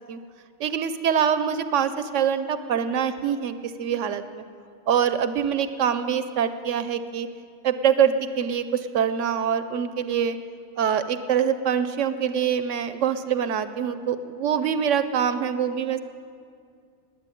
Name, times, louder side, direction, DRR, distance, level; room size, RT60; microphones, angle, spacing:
voice 1, 0.6-4.4 4.9-7.3 7.6-10.4 10.8-16.0, right 8 dB, 70° right, 11 dB, 0.9 m, -24 dB
12.0 x 9.2 x 9.9 m, 2.3 s
omnidirectional pair, 1.4 m